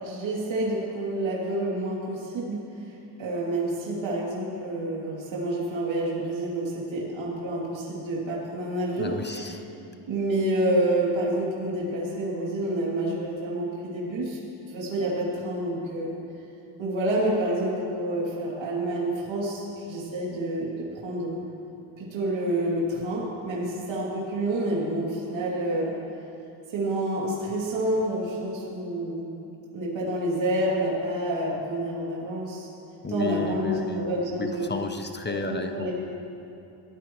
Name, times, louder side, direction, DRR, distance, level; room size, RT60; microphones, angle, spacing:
voice 1, 0.0-9.6 10.1-14.4 14.7-16.1 16.8-21.4 22.0-25.9 26.7-29.3 29.7-32.7 33.1-34.7 35.3-35.9, right 1 dB, 65° right, -5 dB, 3.0 m, -28 dB
voice 2, 9.0-9.6 33.0-34.1 34.4-35.9, left 3 dB, 20° left, 6 dB, 0.7 m, -32 dB
22.0 x 14.5 x 3.1 m, 2.8 s
cardioid pair, 110°, 49 cm